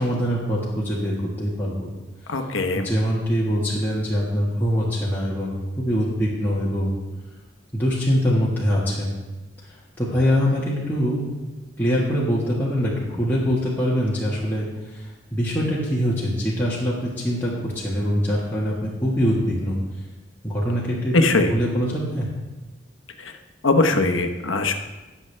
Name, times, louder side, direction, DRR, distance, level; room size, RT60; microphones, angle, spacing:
voice 1, 0.0-1.9 2.7-6.9 7.7-9.1 10.0-11.3 11.8-14.7 15.3-19.8 20.4-22.2, equal, 10° left, -8 dB, 1.6 m, -23 dB
voice 2, 2.3-2.9 21.1-21.5 23.6-24.7, left 2 dB, 85° left, 6 dB, 1.1 m, -20 dB
19.0 x 7.1 x 3.4 m, 1.1 s
head